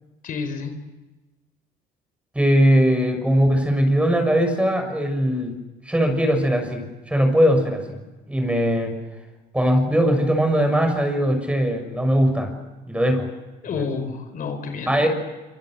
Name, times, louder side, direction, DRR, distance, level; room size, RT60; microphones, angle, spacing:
voice 1, 0.2-0.7 13.6-15.1, left 5 dB, 55° left, 7 dB, 4.4 m, -29 dB
voice 2, 2.3-5.5 5.8-8.0 8.3-8.9 9.5-12.5 12.9-13.3 14.9-15.1, equal, 5° right, 6 dB, 6.6 m, -20 dB
27.0 x 25.5 x 7.9 m, 1.1 s
cardioid pair, 110°, 17 cm